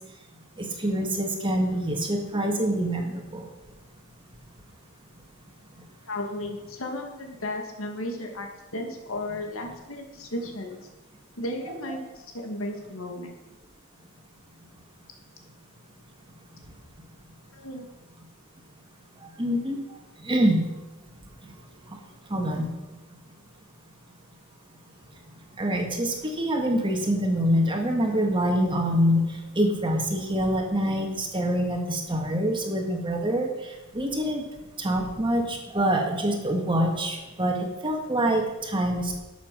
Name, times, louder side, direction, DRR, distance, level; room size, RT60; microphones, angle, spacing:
voice 1, 0.6-3.5 19.4-19.8 20.2-20.6 22.3-22.7 25.6-29.2 29.5-33.5 33.9-34.4 34.8-39.2, equal, 25° right, 2 dB, 1.7 m, -25 dB
voice 2, 6.1-10.8 11.4-13.3 17.5-17.8, left 1 dB, 70° left, 3 dB, 2.0 m, -34 dB
12.0 x 7.2 x 6.1 m, 1.1 s
head